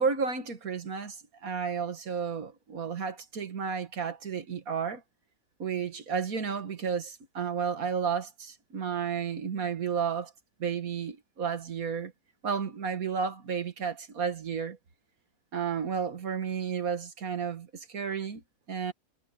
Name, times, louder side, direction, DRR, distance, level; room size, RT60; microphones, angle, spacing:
voice 1, 0.0-5.0 5.6-10.3 10.6-12.1 12.4-14.8 15.5-18.4 18.7-18.9, right 6 dB, 80° right, 2.2 m, -32 dB
omnidirectional pair, 1.5 m